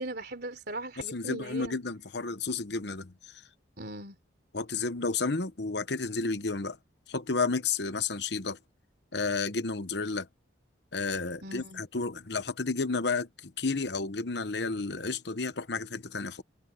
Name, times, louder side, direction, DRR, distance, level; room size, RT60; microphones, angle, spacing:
voice 1, 0.0-1.8 3.8-4.1 11.4-11.8, right 2 dB, 50° right, 4.1 m, -39 dB
voice 2, 1.0-3.1 4.5-6.8 7.1-8.6 9.1-10.3 10.9-16.4, left 4 dB, 55° left, 1.0 m, -31 dB
head